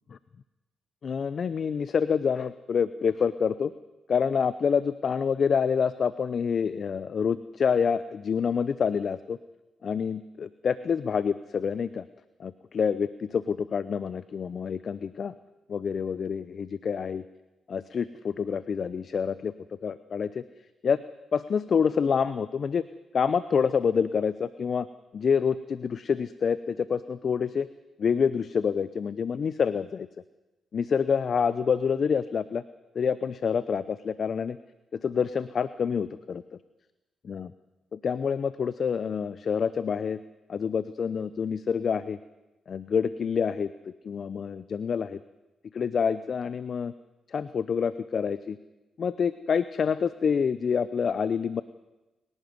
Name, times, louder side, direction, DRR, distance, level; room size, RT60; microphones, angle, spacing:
voice 1, 1.0-3.7 4.1-9.4 9.8-12.0 12.4-15.3 15.7-17.2 17.7-19.5 19.8-20.4 20.8-21.0 21.3-22.9 23.1-24.9 25.1-27.7 28.0-30.1 30.7-32.6 32.9-34.6 34.9-36.4 37.2-37.5 37.9-40.2 40.5-42.2 42.7-43.7 44.0-45.2 45.7-46.9 47.3-48.6 49.0-51.6, left 6 dB, 60° left, 15 dB, 0.7 m, -27 dB
29.0 x 12.0 x 9.6 m, 1.0 s
supercardioid pair, 55°, 0 cm